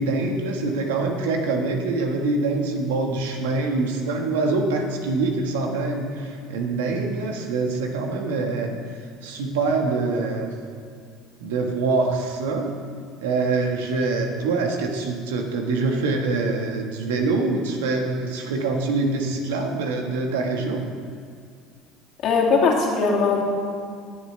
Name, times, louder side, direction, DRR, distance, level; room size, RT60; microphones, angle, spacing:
voice 1, 0.0-10.5 11.4-12.7 13.2-20.8, right 3 dB, 90° right, 2 dB, 1.5 m, -25 dB
voice 2, 22.2-23.4, left 4 dB, 60° left, -2 dB, 2.5 m, -19 dB
20.0 x 7.3 x 3.3 m, 2.2 s
supercardioid pair, 90°, 0 cm